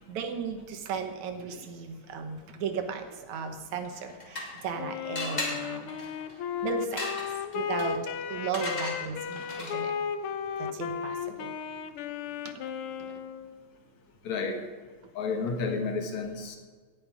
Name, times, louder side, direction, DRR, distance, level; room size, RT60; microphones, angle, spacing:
voice 1, 0.0-5.9 6.6-7.2 7.5-9.9 10.6-11.5 13.1-13.2, right 6 dB, 75° right, 7 dB, 2.6 m, -36 dB
sound 1, 3.8-4.8 5.2-10.0, left 1 dB, 15° left, 2.1 m, -38 dB
Wind instrument woodwind instrument, 4.8-13.6, left 7 dB, 90° left, 1.2 m, -35 dB
voice 2, 14.2-14.6 15.2-16.6, left 4 dB, 70° left, 4 dB, 2.8 m, -31 dB
17.5 x 10.5 x 4.9 m, 1.5 s
omnidirectional pair, 3.4 m